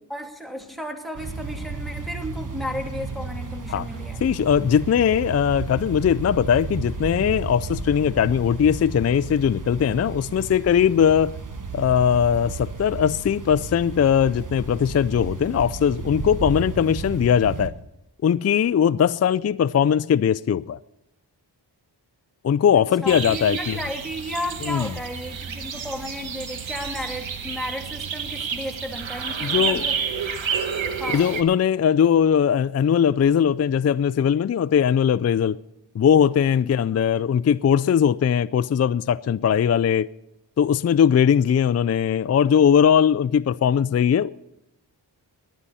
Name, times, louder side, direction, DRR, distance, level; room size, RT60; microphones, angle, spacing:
voice 1, 0.1-4.2 22.7-30.3 31.0-31.3 36.6-37.1, left 1 dB, ahead, 2.6 m, -34 dB
sound 1, 1.2-17.7, right 4 dB, 45° right, 1.4 m, -33 dB
voice 2, 4.2-11.3 11.7-17.7 18.2-20.8 22.4-23.8 24.7-24.9 29.4-29.8 31.1-35.6 35.9-40.1 40.6-44.3, left 8 dB, 35° left, 0.4 m, -20 dB
sound 2, 23.1-31.4, right 6 dB, 85° right, 1.2 m, -30 dB
18.5 x 10.5 x 4.2 m
cardioid pair, 45°, 45 cm